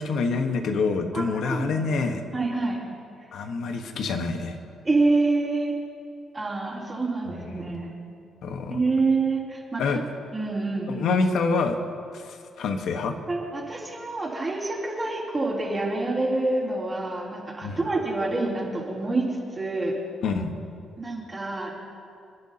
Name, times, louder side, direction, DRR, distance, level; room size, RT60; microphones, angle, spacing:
voice 1, 0.0-2.2 3.3-4.6 8.4-8.8 9.8-10.0 10.9-11.8 12.1-13.2 17.6-17.8 20.2-20.5, left 4 dB, 75° left, 5 dB, 1.3 m, -26 dB
voice 2, 1.1-1.8 2.3-2.8 4.8-5.8 6.3-7.9 8.7-10.0 10.3-11.0 13.3-20.0 21.0-21.8, right 3 dB, 25° right, -6 dB, 3.4 m, -27 dB
29.0 x 11.0 x 2.9 m, 2.5 s
cardioid pair, 90°, 0 cm